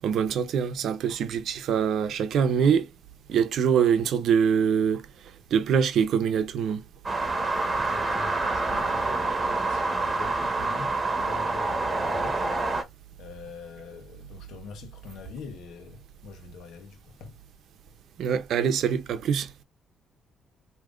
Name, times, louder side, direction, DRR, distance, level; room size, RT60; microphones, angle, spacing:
voice 1, 0.0-2.9 3.3-5.1 5.5-6.8 18.2-19.5, right 7 dB, 70° right, 0.7 m, -24 dB
sound 1, 7.0-12.8, right 3 dB, 25° right, 1.2 m, -27 dB
voice 2, 7.7-12.4 12.8-12.9 13.2-17.4, left 5 dB, 75° left, 1.0 m, -44 dB
4.9 x 2.8 x 2.5 m
cardioid pair, 90°, 0 cm